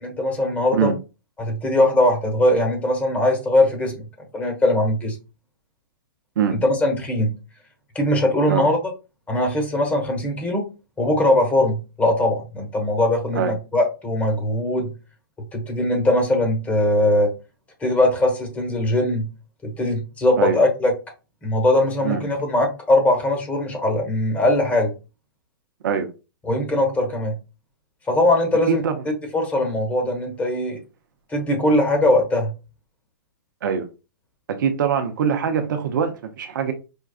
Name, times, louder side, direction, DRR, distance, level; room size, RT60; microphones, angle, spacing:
voice 1, 0.0-0.9 1.4-3.9 4.3-5.2 6.6-7.4 7.9-8.8 9.3-10.6 11.0-14.9 15.5-17.3 17.8-19.3 19.6-20.9 21.4-24.9 26.4-27.3 28.1-28.8 29.3-30.8 31.3-32.5, left 1 dB, 15° left, 1.2 m, -20 dB
voice 2, 34.6-36.7, right 7 dB, 60° right, 0.7 m, -22 dB
5.3 x 2.3 x 2.3 m
hypercardioid pair, 130°, 12 cm